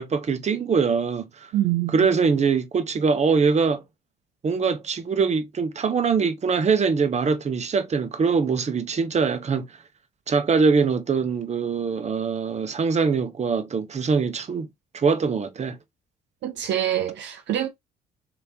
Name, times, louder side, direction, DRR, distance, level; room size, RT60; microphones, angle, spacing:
voice 1, 0.0-1.5 1.9-3.8 4.4-9.7 10.3-14.7 14.9-15.8, right 5 dB, 30° right, 0.8 m, -23 dB
voice 2, 1.5-2.1 16.4-17.7, right 12 dB, 60° right, 0.6 m, -25 dB
3.4 x 3.3 x 2.9 m
hypercardioid pair, 50°, 21 cm